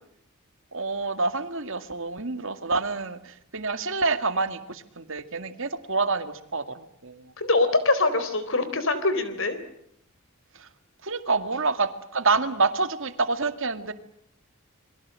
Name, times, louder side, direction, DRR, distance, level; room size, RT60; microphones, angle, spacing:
voice 1, 0.7-7.3 10.6-10.7 11.0-13.9, right 3 dB, 60° right, 10 dB, 2.1 m, -27 dB
voice 2, 7.4-9.6, left 2 dB, 60° left, 12 dB, 3.9 m, -23 dB
28.5 x 23.0 x 7.6 m, 0.72 s
head